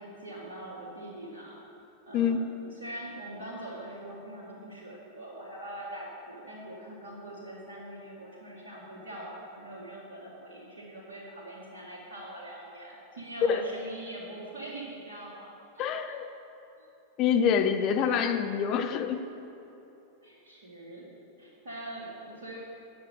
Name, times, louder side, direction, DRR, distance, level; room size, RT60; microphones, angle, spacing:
voice 1, 0.0-1.6 2.1-15.5 15.7-16.1 16.8-16.9 18.0-18.3 20.2-21.1 21.4-22.6, right 1 dB, 65° right, -7 dB, 2.2 m, -43 dB
voice 2, 2.1-2.5 13.4-13.7 15.8-16.3 17.2-19.2, left 7 dB, 35° left, 7 dB, 0.7 m, -26 dB
9.3 x 6.7 x 6.7 m, 2.9 s
figure-of-eight pair, 90°, 0 cm